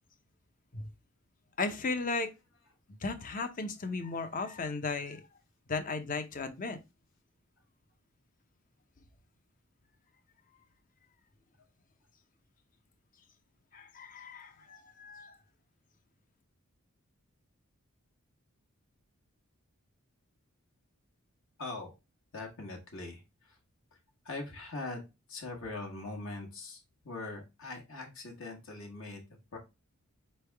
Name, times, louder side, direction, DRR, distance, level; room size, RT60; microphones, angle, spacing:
voice 1, 1.6-2.3 3.0-5.2 5.7-6.8 13.7-15.3, left 3 dB, 35° left, 0.7 m, -35 dB
voice 2, 21.6-21.9 22.3-23.2 24.2-25.0 25.3-26.8 27.0-29.2 29.5-29.6, left 2 dB, 60° left, 1.2 m, -41 dB
4.6 x 3.3 x 3.3 m
head